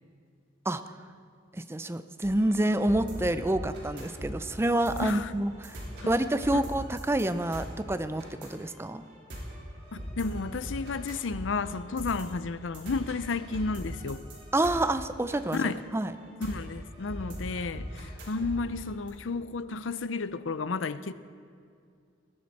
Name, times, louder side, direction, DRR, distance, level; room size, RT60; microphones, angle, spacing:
voice 1, 1.5-5.8 6.1-9.0 14.5-15.6 15.9-16.1, right 1 dB, 15° right, 0.5 m, -28 dB
sound 1, 2.2-19.1, equal, 60° right, 4.1 m, -41 dB
voice 2, 5.0-5.3 6.0-6.1 6.5-6.6 9.9-14.2 15.5-15.8 16.4-21.1, left 4 dB, 90° left, 0.6 m, -32 dB
20.0 x 13.0 x 4.2 m
head